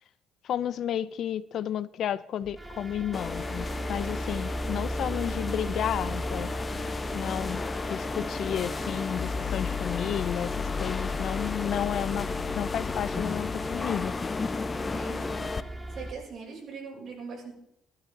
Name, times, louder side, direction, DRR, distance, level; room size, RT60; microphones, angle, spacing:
voice 1, 0.4-6.5 7.1-14.1, left 10 dB, 60° left, 0.6 m, -32 dB
sound 1, 2.4-16.1, right 1 dB, 5° right, 1.5 m, -38 dB
sound 2, 3.1-15.6, left 4 dB, 25° left, 0.7 m, -34 dB
sound 3, 9.2-14.4, left 6 dB, 45° left, 1.2 m, -36 dB
voice 2, 14.9-15.5 15.9-17.5, right 5 dB, 55° right, 7.1 m, -41 dB
20.5 x 12.5 x 3.9 m
cardioid pair, 110°, 0 cm